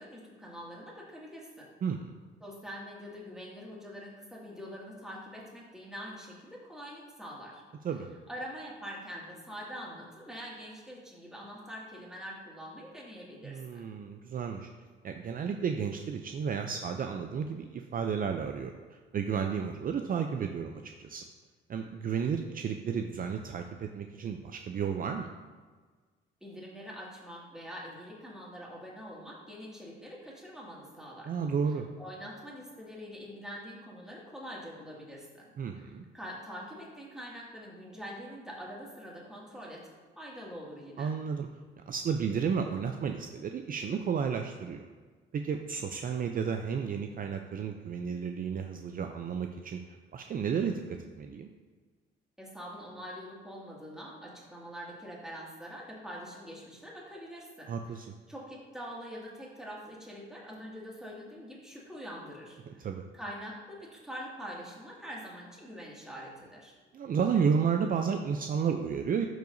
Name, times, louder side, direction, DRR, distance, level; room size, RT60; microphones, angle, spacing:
voice 1, 0.0-1.7 2.4-7.6 8.3-13.9 26.4-31.3 32.0-39.9 40.2-41.1 52.4-57.7 58.3-62.9 63.1-66.7, equal, 5° right, -5 dB, 2.2 m, -44 dB
voice 2, 1.8-2.1 7.8-8.1 13.4-14.7 15.0-18.7 19.1-21.2 21.7-25.3 31.3-31.9 35.6-36.0 41.0-41.5 41.9-44.9 45.3-49.8 50.1-51.5 57.7-58.1 62.8-63.0 66.9-69.3, right 6 dB, 45° right, 5 dB, 0.5 m, -32 dB
12.0 x 4.7 x 2.7 m, 1.4 s
cardioid pair, 90°, 20 cm